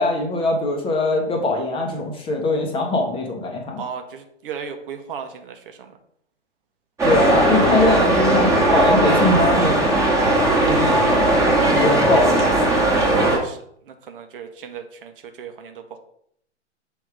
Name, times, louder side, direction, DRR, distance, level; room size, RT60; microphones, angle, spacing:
voice 1, 0.0-3.8 7.0-9.9 10.6-11.2 11.7-12.4, left 2 dB, 15° left, 1 dB, 0.9 m, -22 dB
voice 2, 3.8-6.0 13.2-15.1 15.4-16.0, right 6 dB, 50° right, 7 dB, 0.9 m, -36 dB
sound 1, 7.0-13.4, right 1 dB, 10° right, 1.3 m, -18 dB
6.3 x 3.5 x 4.7 m, 0.69 s
figure-of-eight pair, 120°, 36 cm